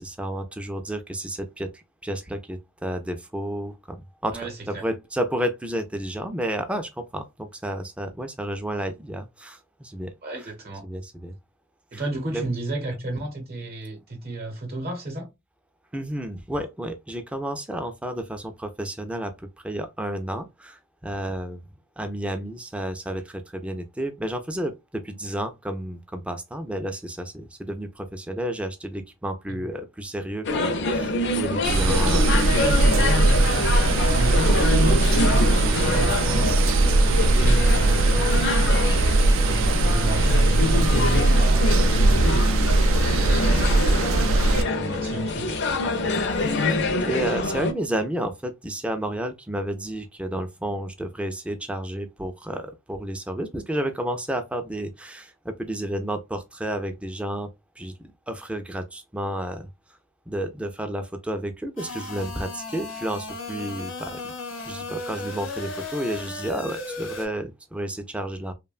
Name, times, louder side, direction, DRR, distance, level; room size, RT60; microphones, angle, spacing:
voice 1, 0.0-10.1 10.8-11.4 11.9-12.0 12.3-12.5 15.9-21.6 22.0-32.5 33.2-33.3 46.7-57.5 57.8-57.9 58.3-59.7 60.3-64.3 64.7-68.5, right 1 dB, 5° right, 0.3 m, -31 dB
voice 2, 4.3-4.8 10.2-10.8 11.9-15.3 29.5-29.6 31.8-36.6 36.9-45.5, right 2 dB, 50° right, 0.8 m, -33 dB
sound 1, 30.4-47.7, left 2 dB, 60° left, 0.5 m, -26 dB
sound 2, 31.6-44.6, right 2 dB, 85° right, 0.4 m, -20 dB
sound 3, 61.8-67.3, left 3 dB, 80° left, 0.9 m, -35 dB
2.9 x 2.1 x 2.3 m
head